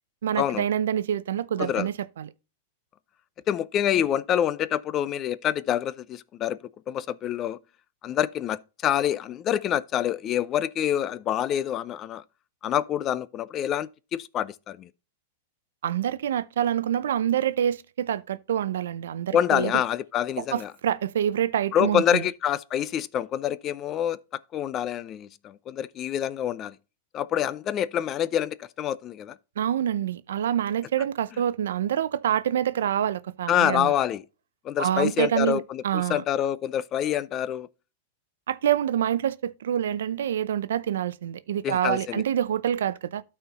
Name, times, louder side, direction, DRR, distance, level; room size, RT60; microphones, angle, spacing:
voice 1, 0.2-2.3 15.8-19.7 20.4-22.2 29.6-33.9 34.8-36.2 38.5-43.2, right 10 dB, 85° right, 0.6 m, -26 dB
voice 2, 1.6-1.9 3.5-6.6 6.9-7.6 8.0-12.2 12.6-14.9 19.3-20.7 21.7-24.2 24.5-26.7 27.1-29.4 33.5-34.2 34.6-37.7 41.6-42.2, left 10 dB, 25° left, 0.4 m, -26 dB
12.5 x 4.4 x 4.0 m
supercardioid pair, 155°, 0 cm